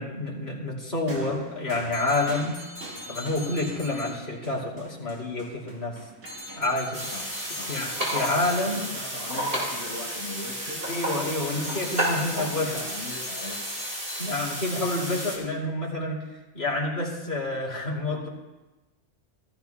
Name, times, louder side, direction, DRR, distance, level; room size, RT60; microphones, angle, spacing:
voice 1, 0.0-2.6 3.1-6.0 6.6-7.1 7.7-8.8 10.9-12.8 14.2-16.3 16.5-18.3, left 2 dB, 50° left, -4 dB, 3.1 m, -28 dB
sound 1, 1.1-8.6 9.6-9.7, right 2 dB, 65° right, 2.1 m, -46 dB
sound 2, 1.9-4.7 6.2-9.2 11.6-14.3, left 2 dB, 75° left, 3.0 m, -42 dB
sound 3, 6.9-15.4, right 1 dB, 45° right, 4.0 m, -32 dB
voice 2, 7.1-7.7 8.6-10.9 11.4-13.6, left 2 dB, 30° left, -6 dB, 3.6 m, -40 dB
18.0 x 13.5 x 2.3 m, 1.1 s
omnidirectional pair, 1.3 m